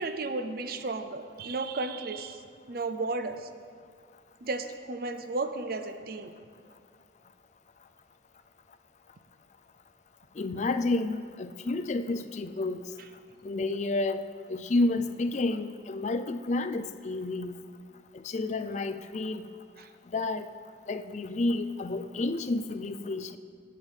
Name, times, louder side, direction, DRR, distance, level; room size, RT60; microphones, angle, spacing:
voice 1, 0.0-3.5 4.4-6.3 19.8-19.9, right 3 dB, 50° right, 8 dB, 0.7 m, -34 dB
voice 2, 10.4-12.9 13.4-17.6 18.1-19.5 20.1-20.5 20.9-23.4, left 2 dB, 35° left, 10 dB, 0.4 m, -30 dB
8.4 x 8.2 x 7.3 m, 2.3 s
head